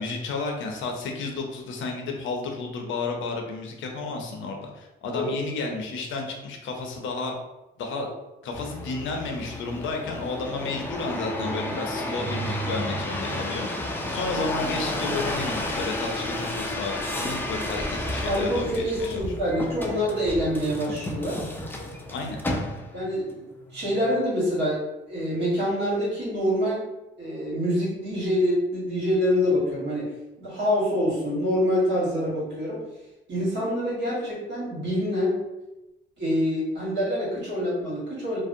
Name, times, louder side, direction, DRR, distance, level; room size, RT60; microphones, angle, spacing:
voice 1, 0.0-7.3 7.8-8.1 8.4-19.2 22.1-22.4, left 3 dB, 75° left, 2 dB, 0.6 m, -32 dB
sound 1, 8.5-23.1 23.7-24.2, left 1 dB, 10° left, 0.4 m, -31 dB
voice 2, 18.2-21.4 22.9-23.4 23.7-26.8 27.2-30.1 30.4-32.8 33.3-35.4 36.2-38.4, equal, 65° right, -6 dB, 1.3 m, -26 dB
2.6 x 2.0 x 2.5 m, 0.99 s
cardioid pair, 90°, 20 cm